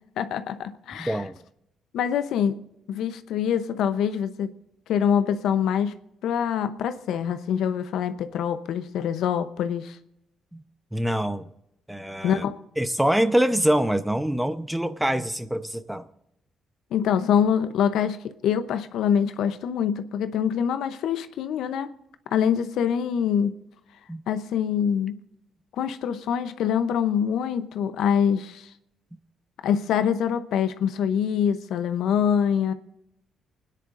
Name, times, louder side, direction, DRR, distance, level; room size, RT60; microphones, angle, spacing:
voice 1, 0.2-1.2 1.9-2.6 2.9-4.5 4.9-6.0 6.2-10.0 12.2-12.6 16.9-21.9 22.3-23.6 24.3-25.1 25.8-28.7 29.6-32.7, left 8 dB, 80° left, 0.7 m, -25 dB
voice 2, 1.0-1.4 10.5-10.6 10.9-11.5 11.9-12.4 12.8-16.1 24.1-24.2, right 1 dB, 5° right, 0.8 m, -25 dB
29.0 x 10.0 x 2.5 m
cardioid pair, 90°, 0 cm